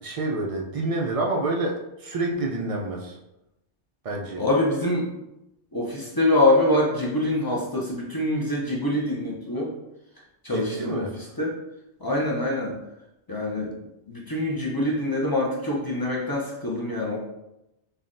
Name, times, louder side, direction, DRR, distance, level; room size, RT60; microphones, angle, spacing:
voice 1, 0.0-3.2 4.0-4.4 10.5-11.2, right 2 dB, 60° right, 0 dB, 0.3 m, -28 dB
voice 2, 4.3-5.1 5.7-9.7 10.4-11.5 12.0-12.7 13.3-13.7 14.1-17.2, left 1 dB, 30° left, -4 dB, 0.4 m, -24 dB
5.6 x 2.2 x 2.5 m, 0.91 s
omnidirectional pair, 1.2 m